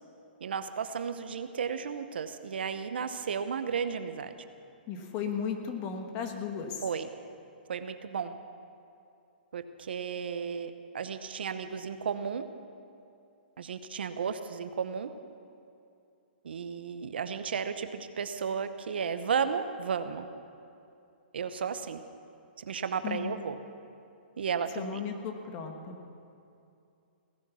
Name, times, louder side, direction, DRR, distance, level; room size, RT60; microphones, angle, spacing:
voice 1, 0.4-4.3 6.8-7.1 7.7-8.4 9.5-12.5 13.6-15.1 16.4-20.3 21.3-22.0 22.6-23.6 24.4-25.0, right 6 dB, 75° right, 10 dB, 0.9 m, -33 dB
voice 2, 4.9-6.8 23.0-23.4 24.7-26.0, left 6 dB, 30° left, 4 dB, 1.4 m, -35 dB
17.0 x 9.8 x 6.2 m, 2.6 s
hypercardioid pair, 155°, 6 cm